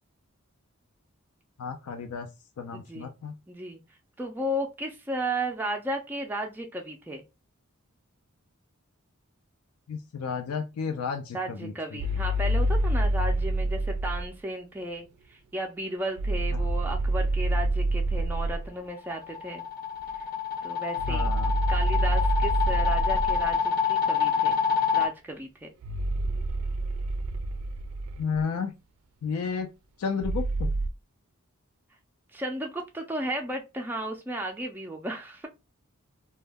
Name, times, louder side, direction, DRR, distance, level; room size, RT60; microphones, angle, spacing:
voice 1, 1.6-2.3 2.6-3.3 9.9-12.0 16.5-16.6 21.0-21.6 28.2-28.7 29.2-29.7 30.0-30.7, left 5 dB, 85° left, 0.4 m, -32 dB
voice 2, 2.7-3.1 3.5-3.8 4.2-7.2 11.3-19.6 20.6-21.3 21.7-24.6 24.9-25.7 32.3-35.5, right 1 dB, 10° right, 0.3 m, -34 dB
sound 1, 12.0-14.3 16.2-18.7 21.0-23.6 25.8-28.4 30.2-30.9, right 1 dB, 90° right, 0.3 m, -27 dB
sound 2, 18.9-25.1, left 7 dB, 40° left, 0.6 m, -27 dB
2.2 x 2.1 x 3.3 m
head